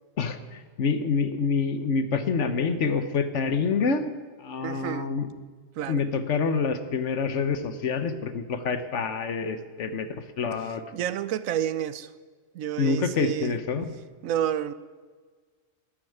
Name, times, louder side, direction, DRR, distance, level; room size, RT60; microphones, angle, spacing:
voice 1, 0.2-4.0 4.4-5.3 5.9-10.1 10.4-10.8 12.8-13.9, left 5 dB, 65° left, 1.3 m, -27 dB
voice 2, 4.6-5.1 5.8-6.0 10.9-12.1 12.5-13.6 14.2-14.7, right 10 dB, 90° right, 1.1 m, -29 dB
11.5 x 9.9 x 9.3 m
omnidirectional pair, 1.4 m